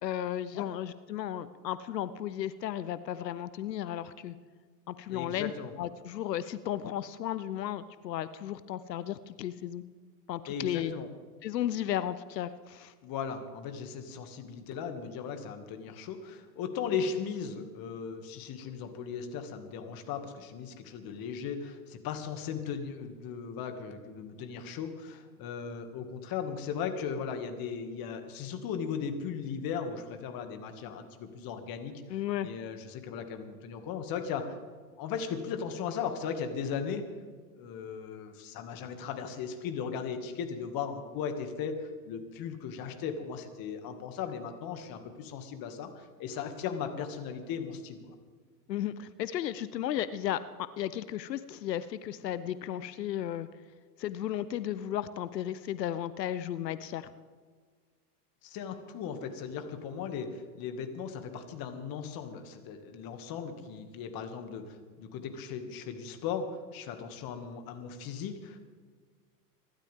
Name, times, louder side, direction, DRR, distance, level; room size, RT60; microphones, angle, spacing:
voice 1, 0.0-4.4 4.9-5.5 5.8-9.8 10.3-10.9 11.4-12.9 32.1-32.5 48.7-50.4 50.8-53.5 54.0-57.1, left 11 dB, 80° left, 15 dB, 0.8 m, -34 dB
voice 2, 5.1-5.7 10.5-11.1 13.0-32.0 32.4-34.6 35.0-37.0 37.6-48.1 58.4-68.6, left 6 dB, 45° left, 6 dB, 2.3 m, -37 dB
25.0 x 12.5 x 3.7 m, 1.5 s
hypercardioid pair, 95°, 49 cm